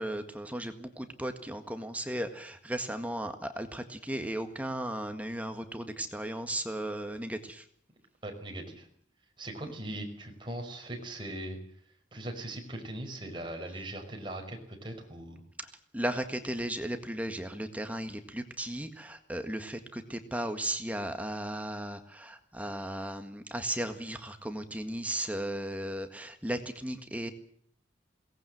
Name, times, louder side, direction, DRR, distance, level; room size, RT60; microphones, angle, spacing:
voice 1, 0.0-7.6 15.6-15.7 15.9-27.3, right 1 dB, 10° right, 7 dB, 1.7 m, -36 dB
voice 2, 8.2-8.9 9.4-11.6 12.1-15.4, right 1 dB, 25° right, 3 dB, 5.3 m, -40 dB
22.0 x 18.5 x 7.9 m, 0.63 s
head